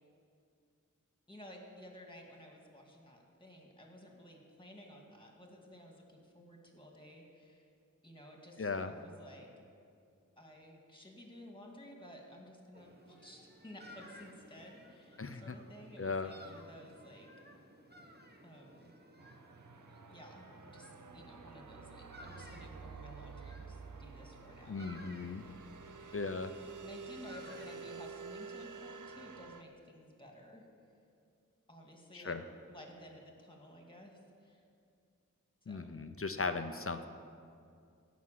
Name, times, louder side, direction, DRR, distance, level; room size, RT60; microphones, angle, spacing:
voice 1, 1.3-7.7 8.0-9.5 10.4-17.3 18.4-18.9 20.1-20.5 20.7-25.5 26.8-30.6 31.7-32.4 32.7-34.6 35.6-36.0, equal, 15° left, 0 dB, 2.3 m, -54 dB
voice 2, 8.6-8.9 15.2-15.5 16.0-16.3 24.7-25.4 26.1-26.5 32.1-32.4 35.7-37.1, left 4 dB, 45° left, 8 dB, 0.7 m, -37 dB
sound 1, 12.7-28.1, equal, 30° right, 1.1 m, -57 dB
sound 2, 19.2-29.6, right 5 dB, 70° right, 0.7 m, -50 dB
15.5 x 6.1 x 7.5 m, 2.4 s
wide cardioid pair, 60°, 32 cm